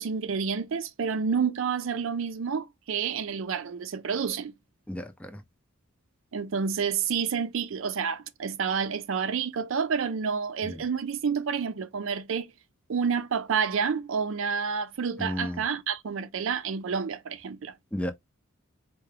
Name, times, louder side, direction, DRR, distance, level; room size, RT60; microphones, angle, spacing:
voice 1, 0.0-4.5 6.3-12.5 12.9-17.7, right 6 dB, 65° right, 0.4 m, -29 dB
voice 2, 4.9-5.4 10.6-10.8 15.2-15.6 17.9-18.1, left 1 dB, 5° left, 0.6 m, -33 dB
4.4 x 2.2 x 3.3 m
head